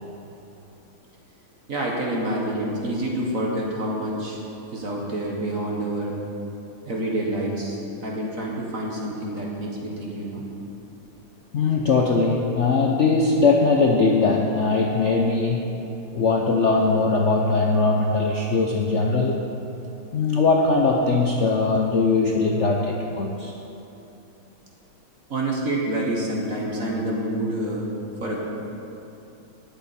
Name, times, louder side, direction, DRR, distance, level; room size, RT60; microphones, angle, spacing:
voice 1, 1.7-4.4 4.7-6.1 6.8-10.4 25.3-27.9 28.2-28.4, right 1 dB, 45° right, -2 dB, 1.7 m, -27 dB
voice 2, 11.5-15.7 16.1-19.4 20.1-23.5, left 3 dB, 90° left, 0 dB, 0.6 m, -20 dB
18.5 x 7.9 x 4.3 m, 2.9 s
omnidirectional pair, 2.3 m